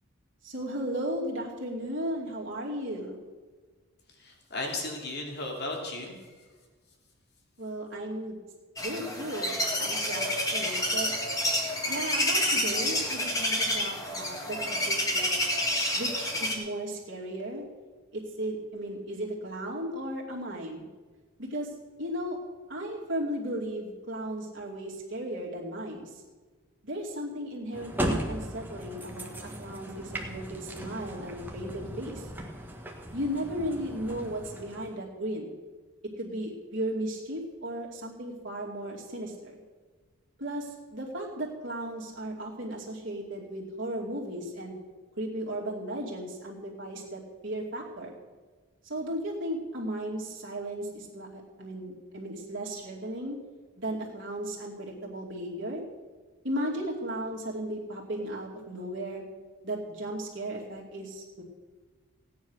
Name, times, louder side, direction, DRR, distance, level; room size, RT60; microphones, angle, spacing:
voice 1, 0.4-3.2 7.6-8.4 8.8-11.1 11.9-15.3 16.0-17.6 18.1-20.9 21.4-21.7 22.0-22.4 22.7-26.1 26.8-32.3 33.1-35.5 36.2-39.6 40.4-44.8 45.2-48.1 48.8-53.4 53.8-55.8 56.4-59.2 59.6-61.4, right 1 dB, 55° right, -3 dB, 2.6 m, -35 dB
voice 2, 4.2-6.2 9.4-9.5 10.7-11.2, left 2 dB, 50° left, 1 dB, 2.8 m, -36 dB
sound 1, 8.8-16.5, left 1 dB, 15° left, 2.0 m, -29 dB
sound 2, 27.7-35.0, equal, 10° right, 1.5 m, -37 dB
16.5 x 9.7 x 6.4 m, 1.4 s
head